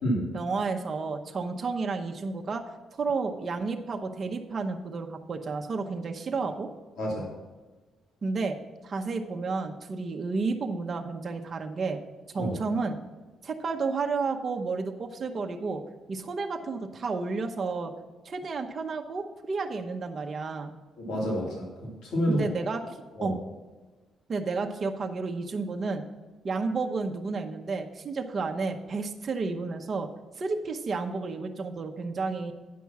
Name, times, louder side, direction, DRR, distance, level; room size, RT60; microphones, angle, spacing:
voice 1, 0.3-2.6 3.0-6.7 8.2-8.6 8.8-12.0 12.3-13.0 13.4-15.8 16.1-17.9 18.2-20.7 22.3-23.3 24.3-26.0 26.4-30.1 30.4-32.5, right 4 dB, 35° right, 3 dB, 0.8 m, -31 dB
voice 2, 7.0-7.3 12.4-12.5 21.0-22.4 23.2-23.3, equal, 80° left, -4 dB, 3.2 m, -29 dB
9.4 x 6.0 x 6.0 m, 1.3 s
cardioid pair, 125°, 0 cm